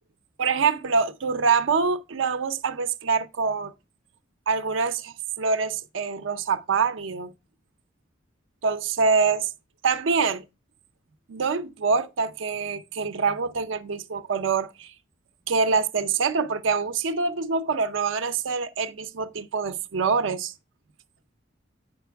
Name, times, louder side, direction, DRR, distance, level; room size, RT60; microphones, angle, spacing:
voice 1, 0.4-3.7 4.5-7.3 8.6-9.5 9.8-10.5 11.3-14.9 15.5-20.5, right 5 dB, 75° right, 0.5 m, -25 dB
8.4 x 5.2 x 3.4 m
head